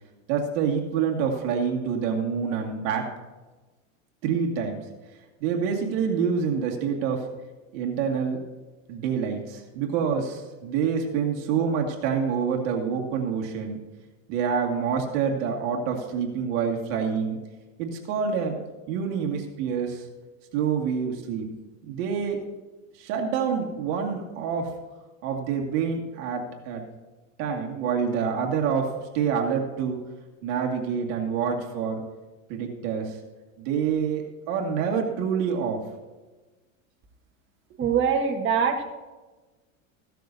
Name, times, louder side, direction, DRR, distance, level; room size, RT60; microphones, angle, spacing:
voice 1, 0.3-3.1 4.2-4.8 5.4-7.3 7.7-8.4 8.9-13.8 14.3-17.4 17.8-18.6 18.9-20.1 20.5-21.5 21.8-22.4 23.0-24.7 25.2-26.8 27.4-30.0 30.4-32.0 32.5-33.2 33.6-35.8, right 6 dB, 55° right, 1 dB, 2.1 m, -27 dB
voice 2, 37.8-38.8, right 6 dB, 30° right, 3 dB, 1.5 m, -23 dB
15.5 x 12.5 x 2.7 m, 1.2 s
supercardioid pair, 130°, 41 cm